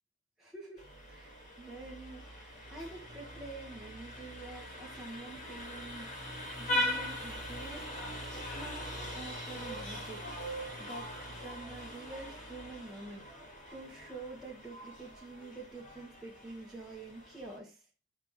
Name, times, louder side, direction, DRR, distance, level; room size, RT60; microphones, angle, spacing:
voice 1, 0.4-6.1 6.6-10.2 10.8-17.8, right 2 dB, ahead, -5 dB, 1.4 m, -47 dB
Vehicle horn car horn honking, 0.8-17.6, left 1 dB, 40° left, 2.2 m, -41 dB
7.4 x 3.5 x 4.6 m, 0.35 s
head